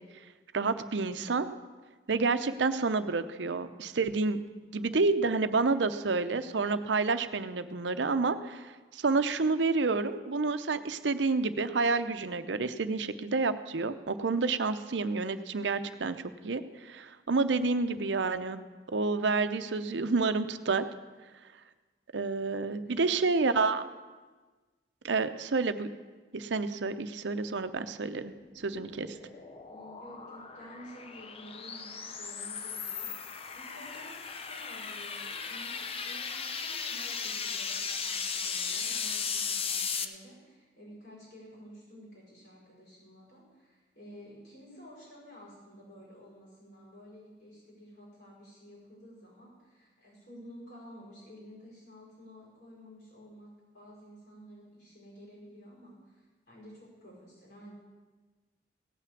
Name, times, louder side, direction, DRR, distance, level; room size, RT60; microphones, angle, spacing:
voice 1, 0.5-1.5 2.1-4.4 4.7-20.8 22.1-23.8 25.0-25.9 26.3-29.2, right 3 dB, 85° right, 10 dB, 0.7 m, -29 dB
voice 2, 22.9-23.2 29.1-57.7, equal, 70° left, -5 dB, 5.4 m, -52 dB
sound 1, 28.4-40.0, left 6 dB, 35° left, 0.6 m, -36 dB
16.5 x 5.9 x 8.3 m, 1.3 s
head